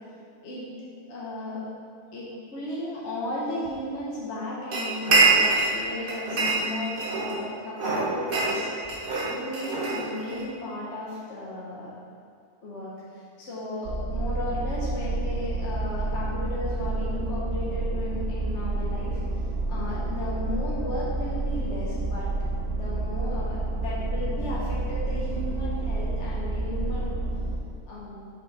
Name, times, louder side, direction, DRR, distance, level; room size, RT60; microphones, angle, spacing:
voice 1, 1.1-1.6 2.1-8.7 9.2-11.9 12.6-19.2 19.7-22.3 22.7-27.1 27.9-28.2, left 1 dB, 50° left, -7 dB, 1.3 m, -35 dB
sound 1, 4.7-5.8 6.1-7.4 7.8-10.5, right 3 dB, 40° right, 1.3 m, -24 dB
sound 2, 13.8-27.6, right 2 dB, 80° right, 1.3 m, -29 dB
6.7 x 5.8 x 4.0 m, 2.3 s
omnidirectional pair, 1.6 m